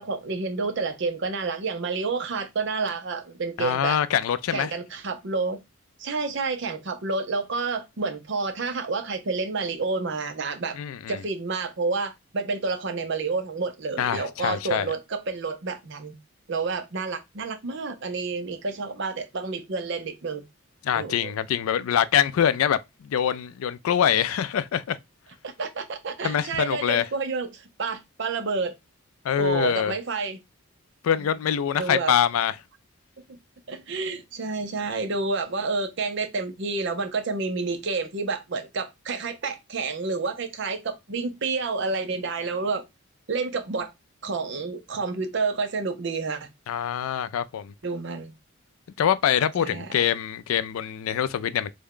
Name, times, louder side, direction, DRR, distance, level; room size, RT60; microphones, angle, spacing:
voice 1, 0.0-4.0 4.5-5.6 6.0-10.8 11.1-16.1 16.5-20.4 20.9-21.3 25.4-28.8 29.4-30.4 31.8-32.1 33.3-33.4 33.7-42.9 43.3-43.9 44.2-46.5 47.8-48.3 49.6-49.9, right 4 dB, 55° right, 0.6 m, -29 dB
voice 2, 3.6-4.7 10.8-11.2 14.0-14.9 20.8-25.0 26.2-27.0 29.2-29.9 31.0-32.6 46.7-47.7 49.0-51.7, left 9 dB, 80° left, 0.3 m, -24 dB
3.4 x 2.2 x 3.6 m
head